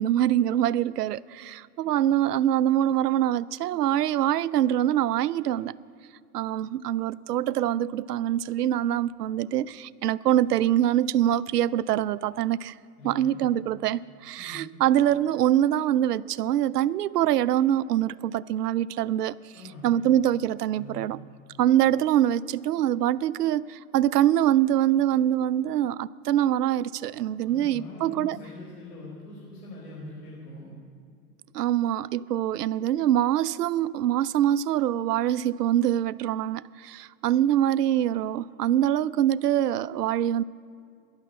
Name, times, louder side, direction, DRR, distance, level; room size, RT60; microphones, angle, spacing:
voice 1, 0.0-5.7 6.3-12.7 13.0-19.4 19.8-21.2 21.6-28.4 31.5-40.4, right 11 dB, 80° right, 0.6 m, -24 dB
voice 2, 13.0-13.4 14.4-14.6 19.5-20.1 20.7-21.1 27.4-30.7, left 2 dB, 85° left, 4.4 m, -43 dB
15.0 x 11.0 x 6.4 m
hypercardioid pair, 135°, 46 cm